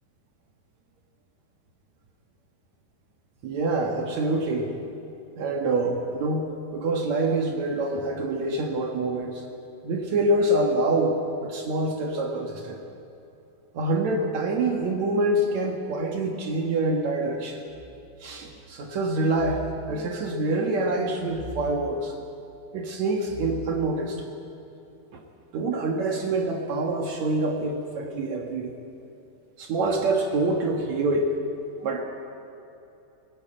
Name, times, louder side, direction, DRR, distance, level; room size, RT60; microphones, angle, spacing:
voice 1, 3.4-4.7 5.4-9.4 9.8-12.8 13.7-17.6 18.2-22.1 22.7-24.2 25.1-25.2 25.5-28.7 29.6-31.3 31.8-32.0, right 2 dB, 65° right, 2 dB, 1.8 m, -26 dB
sound 1, 17.7-18.6 19.3-20.6 21.3-22.6 23.2-24.4, right 2 dB, 55° left, 3.1 m, -42 dB
19.0 x 16.0 x 8.9 m, 2.8 s
omnidirectional pair, 5.4 m